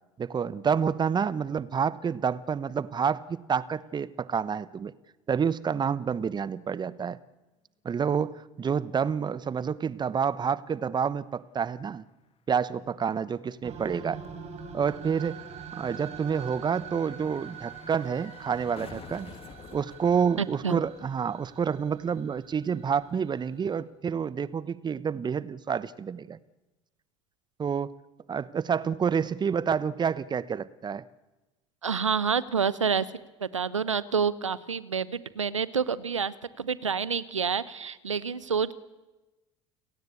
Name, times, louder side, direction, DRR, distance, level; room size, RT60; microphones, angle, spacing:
voice 1, 0.2-4.9 5.3-7.2 7.8-12.0 12.5-14.2 14.7-15.4 15.7-19.3 19.7-26.4 27.6-27.9 28.3-31.0, right 7 dB, 30° right, 18 dB, 1.1 m, -28 dB
sound 1, 11.1-21.5 21.8-21.9, left 7 dB, 35° left, 1.9 m, -52 dB
sound 2, 13.6-23.8, right 6 dB, 45° right, 4.3 m, -44 dB
voice 2, 20.4-20.8 31.8-33.1 33.4-38.7, right 6 dB, 90° right, 19 dB, 0.9 m, -28 dB
30.0 x 17.5 x 8.4 m, 1.1 s
figure-of-eight pair, 65°, 16 cm